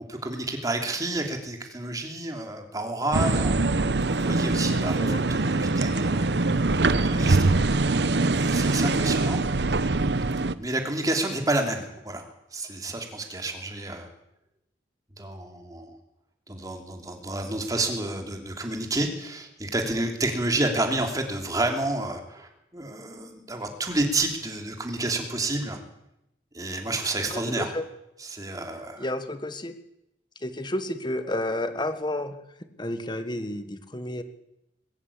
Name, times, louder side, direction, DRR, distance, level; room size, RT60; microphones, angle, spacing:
voice 1, 0.1-3.6 4.0-5.0 5.3-6.7 7.0-7.5 8.3-9.4 10.6-14.1 15.2-16.0 16.5-25.8 26.5-27.7 28.2-29.1, right 2 dB, 20° right, 3 dB, 3.2 m, -30 dB
sound 1, 3.1-10.5, right 3 dB, 70° right, 0.9 m, -23 dB
voice 2, 27.3-27.9 29.0-29.7 30.4-32.4 32.8-34.2, left 1 dB, 25° left, 10 dB, 1.6 m, -31 dB
21.0 x 16.5 x 8.6 m, 0.86 s
head